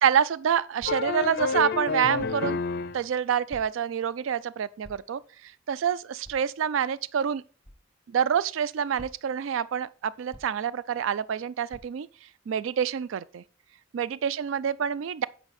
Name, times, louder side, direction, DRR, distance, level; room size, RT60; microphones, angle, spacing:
voice 1, 0.0-2.6 2.9-7.4 8.1-12.1 12.5-13.4 13.9-15.3, right 8 dB, 70° right, 0.3 m, -27 dB
sound 1, 0.8-1.2 2.2-2.4 3.5-3.9 4.8-5.2 6.2-6.5 7.6-7.8 9.0-9.4 10.3-10.7 11.7-11.9, equal, ahead, 1.5 m, -49 dB
sound 2, 0.9-3.0, left 5 dB, 50° left, 0.4 m, -29 dB
8.8 x 5.3 x 4.1 m
head